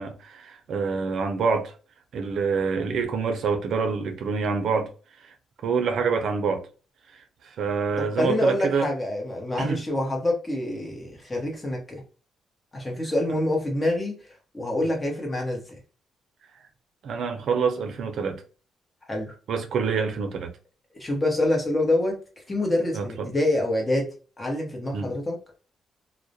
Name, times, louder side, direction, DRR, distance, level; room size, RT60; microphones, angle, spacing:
voice 1, 0.0-1.7 2.1-4.9 5.2-5.3 5.6-6.6 7.1-7.2 7.6-8.9 9.6-9.8 17.0-18.4 19.5-20.5 22.9-23.3 24.9-25.1, right 5 dB, 70° right, 0.5 m, -26 dB
voice 2, 8.0-12.0 12.7-14.1 14.5-15.8 19.1-19.3 20.9-25.4, left 1 dB, 20° left, 0.9 m, -26 dB
2.3 x 2.0 x 2.7 m
cardioid pair, 90°, 0 cm